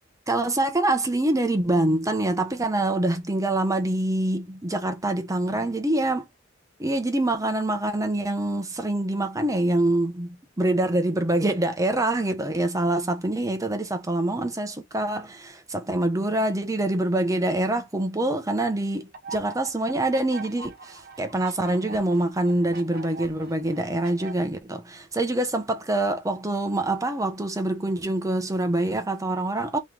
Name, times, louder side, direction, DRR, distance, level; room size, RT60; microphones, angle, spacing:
voice 1, 0.3-6.2 6.8-29.8, right 1 dB, 15° right, 0.8 m, -25 dB
sound 1, 19.1-24.3, right 4 dB, 50° right, 1.2 m, -42 dB
3.3 x 3.0 x 3.5 m
head